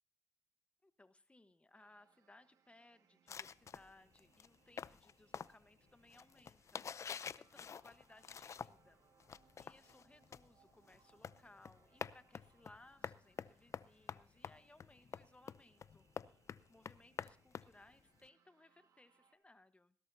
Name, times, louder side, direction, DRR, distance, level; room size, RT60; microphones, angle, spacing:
voice 1, 0.8-9.0 9.6-20.0, left 2 dB, 20° left, 11 dB, 1.2 m, -65 dB
sound 1, 1.7-19.4, right 7 dB, 70° right, 1.8 m, -75 dB
sound 2, 3.3-8.9 9.2-18.3, left 7 dB, 50° left, 0.5 m, -49 dB
19.5 x 16.0 x 2.8 m, 0.38 s
supercardioid pair, 60°, 6 cm